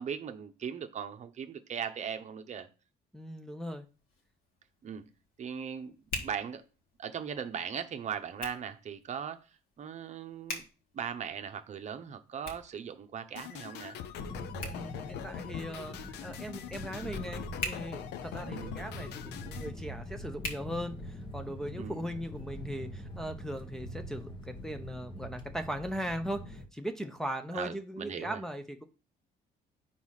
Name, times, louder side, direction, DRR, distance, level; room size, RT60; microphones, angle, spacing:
voice 1, 0.0-2.7 4.8-5.0 5.4-5.9 6.2-6.6 7.0-9.4 9.8-10.6 10.9-14.0 18.4-18.8 21.8-22.1 27.5-28.4, right 7 dB, 45° right, 0.8 m, -39 dB
voice 2, 3.1-3.9 14.6-28.8, equal, 5° left, 0.6 m, -39 dB
Hands, 3.8-21.5, left 2 dB, 60° left, 1.9 m, -47 dB
sound 1, 13.4-19.7, left 10 dB, 80° left, 0.6 m, -43 dB
sound 2, 14.1-26.7, equal, 30° left, 1.1 m, -43 dB
4.7 x 4.2 x 5.7 m
cardioid pair, 110°, 17 cm